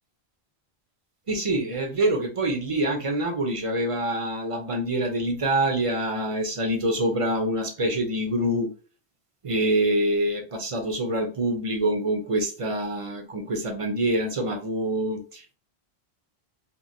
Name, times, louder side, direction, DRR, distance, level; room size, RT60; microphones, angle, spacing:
voice 1, 1.3-8.7 9.4-15.5, right 1 dB, 40° right, 3 dB, 0.5 m, -26 dB
3.0 x 2.4 x 2.5 m, 0.37 s
omnidirectional pair, 1.1 m